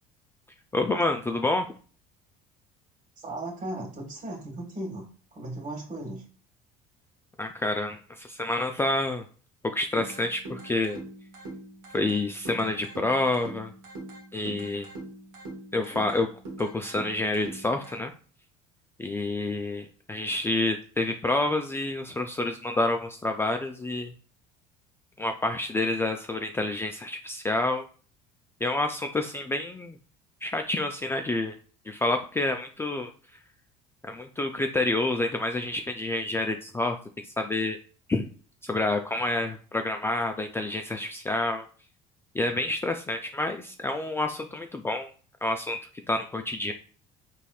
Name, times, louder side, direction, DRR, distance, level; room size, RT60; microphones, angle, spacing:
voice 1, 0.7-1.7 7.4-9.3 9.7-11.0 11.9-13.7 14.3-14.9 15.7-16.3 16.6-18.1 19.0-24.1 25.2-27.8 28.6-30.0 30.4-31.6 31.9-33.1 34.0-37.0 37.4-37.8 38.1-38.3 38.6-41.7 42.3-45.1 45.4-45.8 46.1-46.7, left 2 dB, 15° left, 4 dB, 0.3 m, -28 dB
voice 2, 3.2-5.1 5.3-6.2, right 1 dB, 45° right, 2 dB, 1.8 m, -36 dB
sound 1, 10.0-18.0, right 2 dB, 85° right, 1.3 m, -42 dB
4.1 x 3.2 x 2.3 m, 0.40 s
hypercardioid pair, 75°, 18 cm